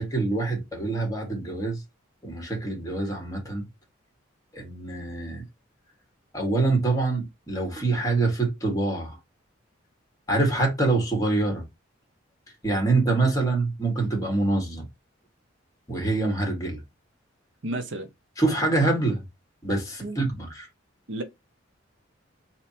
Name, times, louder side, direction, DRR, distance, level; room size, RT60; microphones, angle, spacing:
voice 1, 0.0-1.8 2.2-3.6 4.5-5.4 6.3-9.2 10.3-11.6 12.6-14.8 15.9-16.8 18.4-19.2 19.6-20.7, right 3 dB, 15° left, 1.8 m, -25 dB
voice 2, 17.6-18.1 20.0-20.2 21.1-21.2, right 2 dB, 65° right, 0.8 m, -31 dB
3.4 x 2.8 x 4.2 m
head